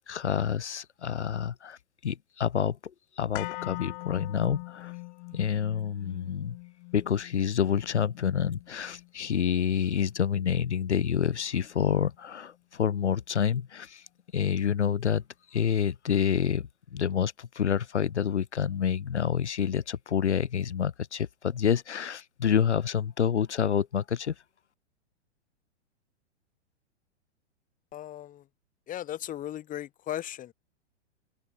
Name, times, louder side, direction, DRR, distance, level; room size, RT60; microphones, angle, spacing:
voice 1, 0.0-1.8 2.0-2.9 3.2-4.9 5.3-6.6 6.9-14.0 14.3-15.2 15.5-24.3, left 8 dB, 75° left, 2.5 m, -28 dB
sound 1, 3.3-11.4 11.7-11.8, left 37 dB, 40° left, 5.5 m, -43 dB
voice 2, 27.9-28.5 28.9-30.5, left 12 dB, 20° left, 1.9 m, -37 dB
figure-of-eight pair, 110°, 35 cm